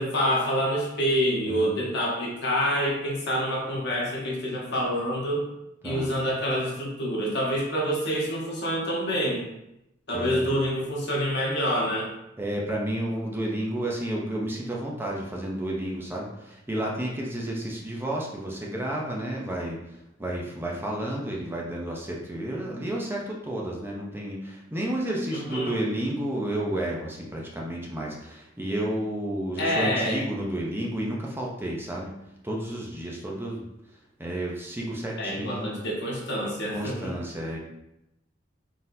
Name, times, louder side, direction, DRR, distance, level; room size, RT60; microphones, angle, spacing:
voice 1, 0.0-5.5 5.8-9.4 10.1-12.1 25.3-25.7 29.6-30.2 35.2-37.1, equal, 60° left, -3 dB, 1.2 m, -27 dB
voice 2, 1.4-1.8 5.8-6.1 10.1-10.6 12.4-32.1 32.4-35.8 36.7-37.6, right 1 dB, 10° right, -2 dB, 0.6 m, -31 dB
4.1 x 3.8 x 2.7 m, 0.87 s
head